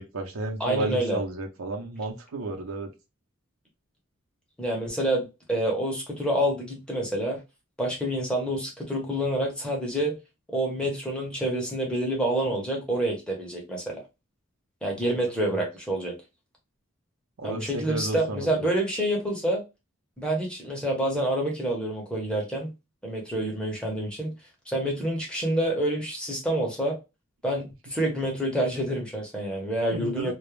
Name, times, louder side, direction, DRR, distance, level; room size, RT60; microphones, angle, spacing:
voice 1, 0.0-2.9 15.0-15.2 15.5-15.6 17.4-18.7 29.9-30.3, right 2 dB, 90° right, 3 dB, 0.7 m, -33 dB
voice 2, 0.6-1.2 4.6-7.4 7.8-10.2 10.5-14.0 14.8-16.2 17.4-19.6 20.2-22.7 23.0-24.3 24.7-27.0 27.4-30.3, right 1 dB, 5° left, -1 dB, 0.7 m, -27 dB
2.3 x 2.0 x 3.0 m, 0.26 s
head